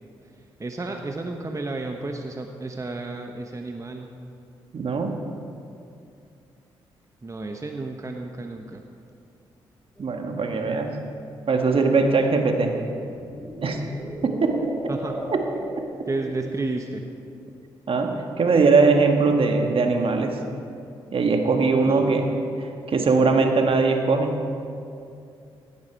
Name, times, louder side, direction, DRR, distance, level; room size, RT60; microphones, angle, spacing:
voice 1, 0.6-4.1 7.2-8.8 14.9-15.1 16.1-17.0 21.8-22.1, right 2 dB, 25° right, 4 dB, 1.1 m, -32 dB
voice 2, 4.7-5.1 10.0-10.9 11.5-12.7 13.6-13.8 14.2-14.7 15.3-15.4 17.9-20.4 21.1-22.3 22.6-24.4, right 4 dB, 50° right, 4 dB, 1.7 m, -21 dB
sound 1, 10.0-10.1 13.0-16.7, equal, 5° left, 2.9 m, -36 dB
16.5 x 10.5 x 4.6 m, 2.5 s
hypercardioid pair, 40°, 12 cm